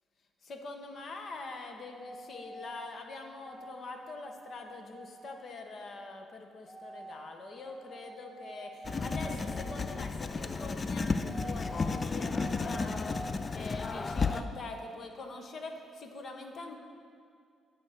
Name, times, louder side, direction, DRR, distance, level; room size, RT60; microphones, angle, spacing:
voice 1, 0.4-16.8, left 3 dB, 55° left, 4 dB, 0.9 m, -44 dB
sound 1, 1.8-3.0 3.4-5.5 6.7-7.2 7.6-10.1 11.2-13.5 14.0-15.0, right 1 dB, 15° right, 0.6 m, -47 dB
Writing, 8.8-14.4, left 4 dB, 35° left, 0.4 m, -33 dB
9.1 x 4.6 x 6.3 m, 2.3 s
cardioid pair, 90°, 0 cm